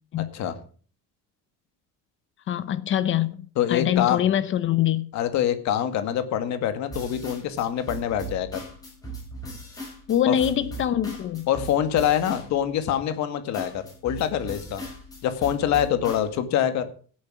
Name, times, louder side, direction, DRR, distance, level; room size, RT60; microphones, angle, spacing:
voice 1, 2.5-5.1 10.1-11.5, left 11 dB, 35° left, 0.7 m, -24 dB
voice 2, 3.6-4.2 5.1-8.6 10.3-10.4 11.5-14.8 15.2-16.9, left 10 dB, 50° left, 1.9 m, -25 dB
sound 1, 6.9-12.9 13.5-16.3, right 2 dB, 10° left, 6.7 m, -39 dB
16.5 x 8.6 x 4.9 m
cardioid pair, 170°, 36 cm